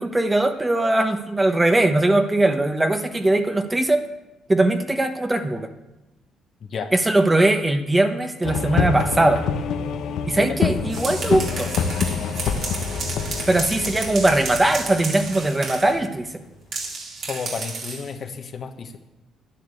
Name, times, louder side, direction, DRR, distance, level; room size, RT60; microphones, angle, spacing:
voice 1, 0.0-4.0 4.5-5.7 6.9-9.4 10.3-11.7 13.5-16.3, right 2 dB, 15° right, 6 dB, 1.2 m, -20 dB
sound 1, 8.4-16.0, left 6 dB, 70° left, 1.1 m, -26 dB
voice 2, 10.2-10.6 17.3-19.0, left 5 dB, 50° left, 4 dB, 1.4 m, -32 dB
sound 2, 10.7-16.0 16.7-18.1, right 4 dB, 60° right, 2.9 m, -32 dB
10.0 x 10.0 x 7.8 m, 0.97 s
supercardioid pair, 75°, 0 cm